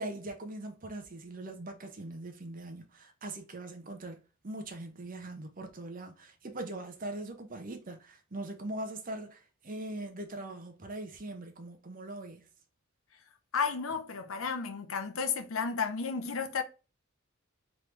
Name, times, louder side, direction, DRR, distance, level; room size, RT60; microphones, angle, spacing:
voice 1, 0.0-12.5, right 2 dB, 45° right, 0.8 m, -41 dB
voice 2, 13.5-16.6, left 5 dB, 90° left, 0.7 m, -32 dB
3.7 x 3.2 x 3.1 m
head